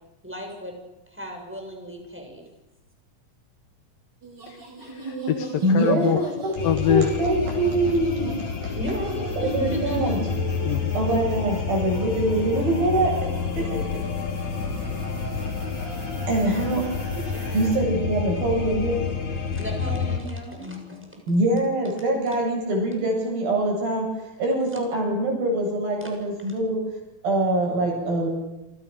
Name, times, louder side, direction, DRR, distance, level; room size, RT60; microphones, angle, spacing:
voice 1, 0.2-0.7 1.1-2.4 8.7-10.2 17.3-17.6 19.5-21.2 26.0-26.1 26.4-26.5, right 1 dB, 5° right, 2 dB, 6.7 m, -35 dB
sound 1, 4.2-17.8, right 1 dB, 30° right, 5.6 m, -39 dB
voice 2, 4.5-6.3 6.6-7.1 10.6-10.9, left 10 dB, 75° left, 7 dB, 3.1 m, -25 dB
voice 3, 5.6-8.3 8.6-8.7 9.4-10.3 10.9-13.1 13.6-13.8 16.3-16.8 17.5-19.0 20.6-20.8 21.3-24.1 24.4-26.8 27.2-28.3, right 1 dB, 75° right, -1 dB, 10.0 m, -24 dB
sound 2, 6.6-20.2, left 5 dB, 55° left, 3.8 m, -29 dB
27.5 x 26.0 x 6.7 m, 0.94 s
omnidirectional pair, 4.2 m